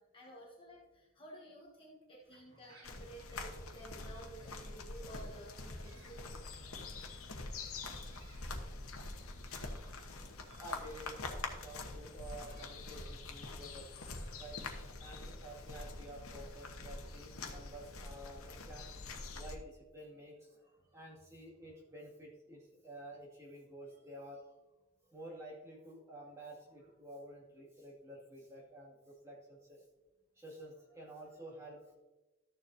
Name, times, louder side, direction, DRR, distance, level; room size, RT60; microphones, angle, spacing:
voice 1, 0.0-6.4, right 1 dB, 25° left, -2 dB, 1.1 m, -53 dB
sound 1, 2.2-14.4, right 1 dB, 45° right, 2.0 m, -66 dB
sound 2, 2.8-19.6, left 3 dB, 85° left, 1.0 m, -45 dB
voice 2, 10.5-13.9 14.4-18.9 19.3-24.4 25.1-29.8 30.4-31.9, right 1 dB, 15° right, -5 dB, 2.1 m, -51 dB
13.0 x 7.0 x 2.7 m, 1.1 s
head